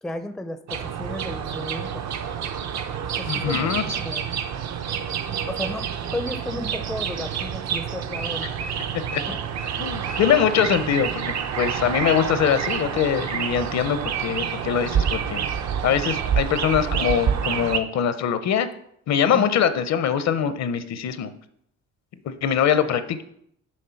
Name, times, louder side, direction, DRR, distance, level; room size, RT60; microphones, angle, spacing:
voice 1, 0.0-2.0 3.2-4.3 5.3-8.6 9.3-9.4 19.3-19.5, left 1 dB, ahead, 10 dB, 0.4 m, -34 dB
sound 1, 0.7-17.8, right 8 dB, 65° right, 0.7 m, -28 dB
voice 2, 3.3-3.8 9.1-9.2 9.8-15.4 15.8-18.7 19.1-21.3 22.3-23.2, left 8 dB, 60° left, 12 dB, 0.6 m, -23 dB
6.5 x 3.6 x 5.7 m, 0.71 s
cardioid pair, 90°, 30 cm